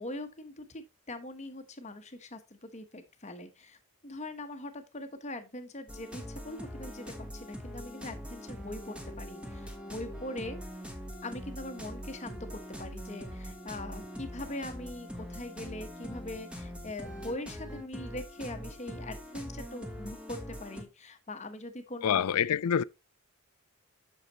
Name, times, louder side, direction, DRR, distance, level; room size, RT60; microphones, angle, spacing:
voice 1, 0.0-3.8 4.0-10.6 11.2-22.2, left 1 dB, 30° left, 1.0 m, -42 dB
sound 1, 5.9-20.8, equal, 5° right, 1.1 m, -42 dB
voice 2, 22.0-22.8, left 8 dB, 85° left, 0.4 m, -26 dB
8.2 x 6.5 x 2.9 m
head